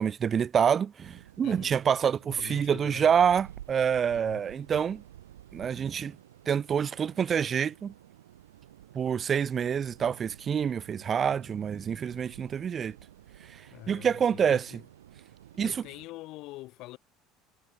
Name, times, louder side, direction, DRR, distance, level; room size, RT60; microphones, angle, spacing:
voice 1, 0.0-5.0 5.5-6.2 6.4-7.9 8.9-12.9 13.5-13.6 13.9-14.7 15.6-15.7, right 7 dB, 40° right, 1.7 m, -27 dB
sound 1, 1.0-16.1, right 12 dB, 85° right, 4.0 m, -52 dB
voice 2, 1.4-1.8 2.3-3.1 4.1-4.4 13.6-14.9 15.5-17.0, left 19 dB, 60° left, 7.3 m, -44 dB
hypercardioid pair, 70°, 0 cm